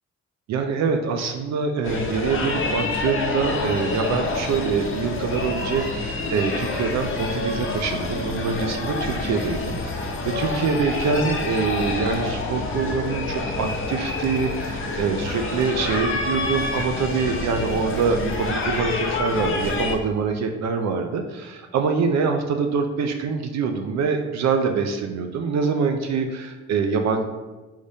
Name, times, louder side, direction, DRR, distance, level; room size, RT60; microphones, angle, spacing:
voice 1, 0.5-27.2, right 5 dB, 65° right, 5 dB, 0.5 m, -25 dB
sound 1, 1.8-20.0, left 3 dB, 45° left, 1.0 m, -27 dB
4.8 x 2.7 x 3.3 m, 1.2 s
cardioid pair, 90°, 30 cm